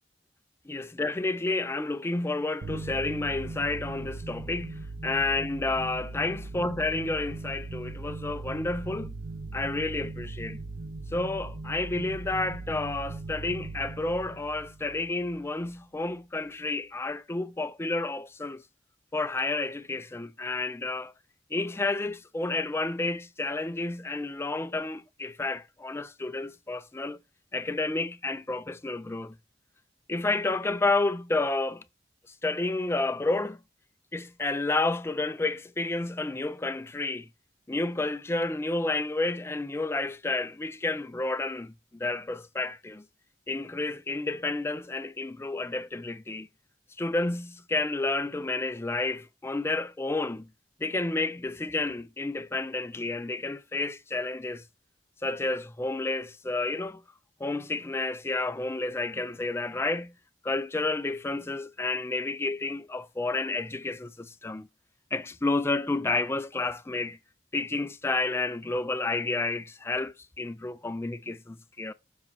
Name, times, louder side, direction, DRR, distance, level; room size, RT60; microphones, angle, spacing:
voice 1, 0.7-9.2 9.5-10.6 11.1-18.6 19.1-21.1 21.5-27.2 27.5-29.4 30.1-31.8 32.4-33.6 34.1-37.3 37.7-43.0 43.5-46.5 47.0-50.5 50.8-54.6 55.2-57.0 57.4-60.1 60.4-64.7 65.1-67.2 67.5-71.9, left 2 dB, 15° left, 0.3 m, -30 dB
sound 1, 2.6-15.8, right 3 dB, 75° right, 0.9 m, -39 dB
7.3 x 2.9 x 5.9 m
head